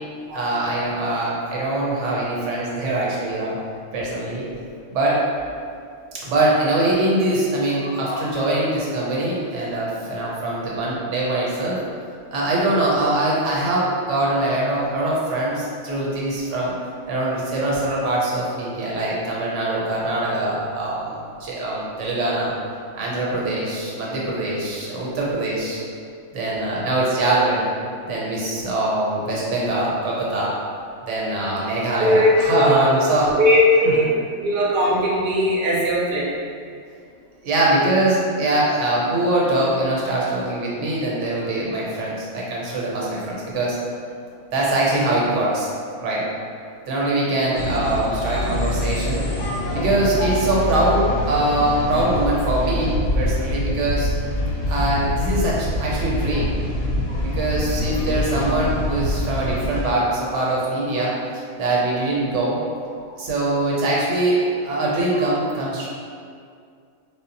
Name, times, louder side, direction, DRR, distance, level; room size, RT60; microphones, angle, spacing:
voice 1, 0.3-3.6 3.9-4.4 4.9-5.2 6.2-11.8 12.3-16.7 17.1-21.2 21.4-22.5 23.0-25.9 26.3-27.7 28.1-30.6 31.0-33.3 37.4-43.8 44.5-45.7 46.0-46.2 46.9-49.2 49.7-54.1 54.7-56.5 57.2-61.1 61.6-62.6 63.2-65.9, right 2 dB, 80° right, -5 dB, 0.9 m, -22 dB
voice 2, 32.0-33.0 33.4-36.4 47.5-47.6 65.1-65.3, left 1 dB, 55° right, -5 dB, 0.6 m, -19 dB
sound 1, 47.5-59.9, left 1 dB, 80° left, 0.9 m, -25 dB
2.0 x 2.0 x 3.7 m, 2.3 s
omnidirectional pair, 1.3 m